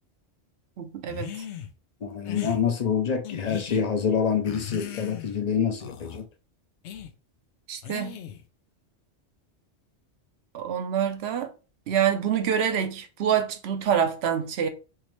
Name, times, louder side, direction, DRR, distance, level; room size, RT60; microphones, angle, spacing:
voice 1, 0.8-1.3 7.7-8.2 10.5-11.5 11.9-14.7, right 8 dB, 70° right, 0.9 m, -26 dB
sound 1, 1.1-1.7 2.2-2.6 3.2-3.8 4.4-5.4 5.8-6.2 6.8-7.1 7.8-8.5, left 9 dB, 85° left, 0.9 m, -37 dB
voice 2, 2.0-6.3, left 7 dB, 45° left, 0.6 m, -26 dB
3.6 x 3.0 x 3.1 m
omnidirectional pair, 1.2 m